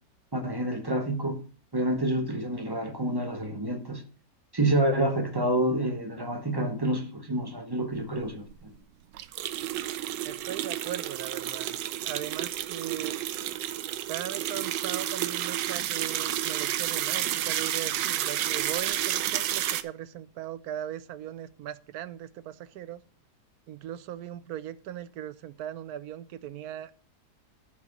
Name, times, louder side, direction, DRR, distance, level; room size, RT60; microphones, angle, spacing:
voice 1, 0.3-1.4 1.7-4.0 4.5-8.7, right 1 dB, 20° right, 0.6 m, -28 dB
sound 1, 8.2-8.3 8.5-8.6 9.1-19.8, right 12 dB, 85° right, 1.3 m, -31 dB
voice 2, 10.2-11.8 12.0-13.2 14.1-23.0 23.7-26.9, right 11 dB, 70° right, 1.0 m, -39 dB
11.0 x 4.5 x 6.4 m
omnidirectional pair, 1.9 m